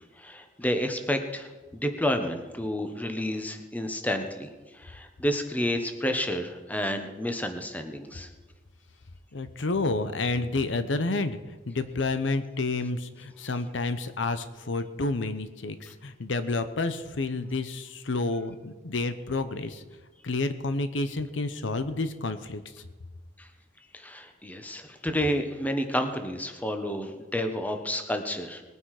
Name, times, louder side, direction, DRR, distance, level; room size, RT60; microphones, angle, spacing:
voice 1, 0.2-8.3 23.4-23.5 23.9-28.6, equal, 10° left, 6 dB, 1.1 m, -30 dB
voice 2, 9.3-11.4 11.7-19.8 20.2-22.6, left 3 dB, 75° left, 11 dB, 0.9 m, -29 dB
20.0 x 9.5 x 4.9 m, 1.2 s
head